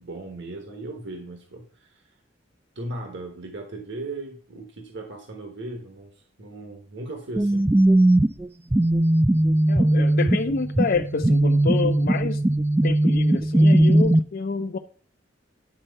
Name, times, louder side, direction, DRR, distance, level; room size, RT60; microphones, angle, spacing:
voice 1, 0.0-2.1 2.7-7.7, right 2 dB, 65° right, 1.4 m, -37 dB
sound 1, 7.4-14.2, right 1 dB, 10° right, 0.4 m, -19 dB
voice 2, 9.7-12.4 12.8-14.8, left 4 dB, 50° left, 0.5 m, -27 dB
10.5 x 4.4 x 6.6 m
head